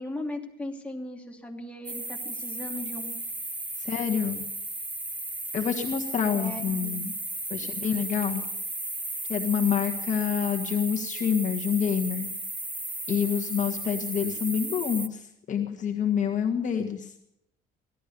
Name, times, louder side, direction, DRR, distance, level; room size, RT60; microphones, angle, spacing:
voice 1, 0.0-3.2 6.3-7.0, left 1 dB, 5° left, 0 dB, 2.7 m, -37 dB
sound 1, 1.9-15.1, right 2 dB, 10° right, 0.7 m, -35 dB
voice 2, 3.8-4.4 5.5-7.1 7.5-8.4 9.3-12.3 13.1-17.1, left 8 dB, 45° left, 2 dB, 1.6 m, -27 dB
16.5 x 12.0 x 6.9 m, 0.78 s
cardioid pair, 110°, 17 cm